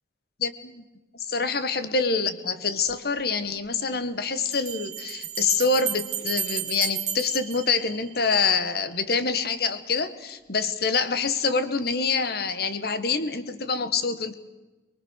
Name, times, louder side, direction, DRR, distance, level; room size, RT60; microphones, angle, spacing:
voice 1, 0.4-0.8 1.1-14.3, left 4 dB, 60° left, 11 dB, 1.4 m, -26 dB
Bell, 2.9-3.0 4.5-8.4, right 9 dB, 40° right, 2.5 m, -33 dB
23.5 x 22.0 x 6.4 m, 1.1 s
head